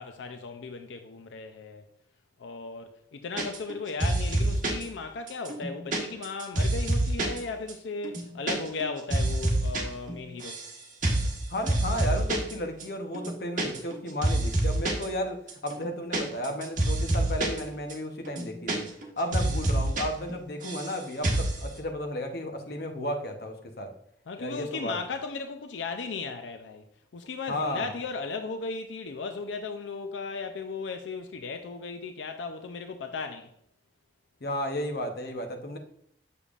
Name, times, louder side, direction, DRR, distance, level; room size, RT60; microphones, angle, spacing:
voice 1, 0.0-1.8 2.4-10.6 24.3-26.8 27.1-33.5, left 4 dB, 90° left, 0.5 m, -36 dB
sound 1, 3.4-3.7 4.0-4.8 5.3-7.4 7.7-7.8 8.0-8.5 8.8-9.8 10.1-10.7 11.0-11.3 11.7-12.5 12.8-12.9 13.1-14.0 14.2-15.0 15.5-17.6 17.9-18.0 18.2-19.1 19.3-20.0 20.3-20.9 21.2-21.6, right 1 dB, 45° right, 1.3 m, -27 dB
voice 2, 11.5-23.9 24.4-25.0 27.5-27.9 34.4-35.8, left 1 dB, 55° left, 0.8 m, -33 dB
6.9 x 6.7 x 2.5 m
head